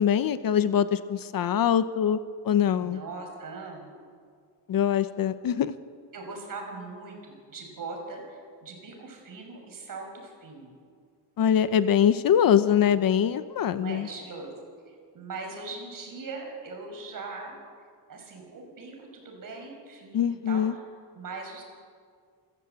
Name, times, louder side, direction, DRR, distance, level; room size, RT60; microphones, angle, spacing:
voice 1, 0.0-2.2 2.4-3.0 4.7-5.7 11.4-14.1 20.1-20.7, left 9 dB, 55° left, 13 dB, 0.9 m, -23 dB
voice 2, 2.8-3.9 6.1-10.8 13.6-14.5 15.1-17.6 18.1-20.8 21.1-21.6, right 3 dB, 50° right, 2 dB, 6.0 m, -40 dB
27.5 x 15.0 x 8.2 m, 2.1 s
cardioid pair, 145°, 42 cm